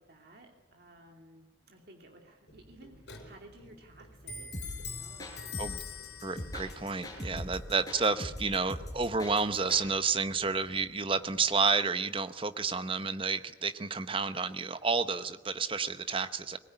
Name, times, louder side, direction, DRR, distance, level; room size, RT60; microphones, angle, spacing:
voice 1, 0.0-4.5 4.9-5.4, right 1 dB, 55° right, 2 dB, 2.9 m, -56 dB
Clock, 2.5-11.8, left 5 dB, 60° left, 4.7 m, -47 dB
sound 1, 4.5-9.9, equal, 20° left, 4.7 m, -41 dB
voice 2, 6.2-16.6, right 4 dB, 25° right, 11 dB, 0.9 m, -30 dB
22.0 x 19.5 x 9.9 m, 1.1 s
head